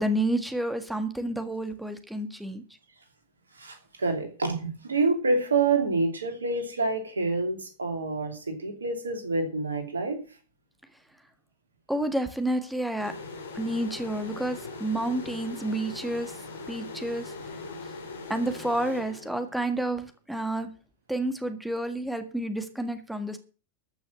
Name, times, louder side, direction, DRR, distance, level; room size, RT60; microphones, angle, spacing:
voice 1, 0.0-2.6 11.9-13.1 13.5-16.3 16.7-17.3 18.3-20.7 21.1-23.4, right 1 dB, ahead, 8 dB, 1.7 m, -30 dB
voice 2, 3.6-10.2, right 3 dB, 75° right, 5 dB, 2.9 m, -27 dB
sound 1, 13.0-19.7, left 3 dB, 65° left, 2.9 m, -40 dB
14.0 x 6.2 x 7.6 m, 0.37 s
figure-of-eight pair, 90°, 0 cm